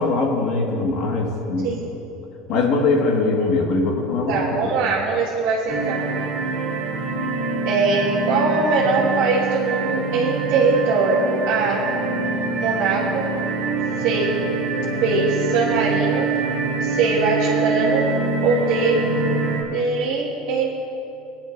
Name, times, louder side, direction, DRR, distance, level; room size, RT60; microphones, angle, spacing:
voice 1, 0.0-1.8 2.5-4.9, left 3 dB, 55° left, 1 dB, 1.6 m, -22 dB
voice 2, 4.3-6.1 7.6-11.9 12.6-13.4 14.0-14.5 14.9-16.3 16.8-18.1 18.4-19.1 19.7-20.8, right 4 dB, 75° right, -6 dB, 1.5 m, -21 dB
sound 1, 5.7-19.6, right 3 dB, 50° right, 2.8 m, -25 dB
19.0 x 10.0 x 2.6 m, 2.9 s
cardioid pair, 140°, 0 cm